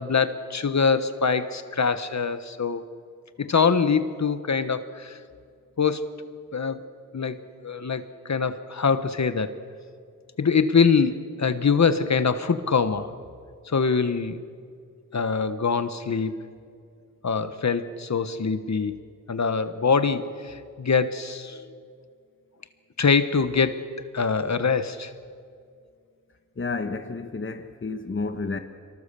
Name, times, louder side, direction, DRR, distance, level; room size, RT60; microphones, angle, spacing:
voice 1, 0.0-2.8 3.4-5.2 5.8-6.1 6.5-6.8 7.1-7.4 7.6-9.5 10.4-13.1 13.7-14.4 15.1-16.4 17.2-18.9 19.3-21.7 23.0-23.8 24.1-25.1, left 5 dB, 55° left, 1.2 m, -24 dB
voice 2, 26.6-28.6, left 3 dB, 40° left, 1.2 m, -31 dB
26.5 x 23.5 x 6.9 m
wide cardioid pair, 85°, 32 cm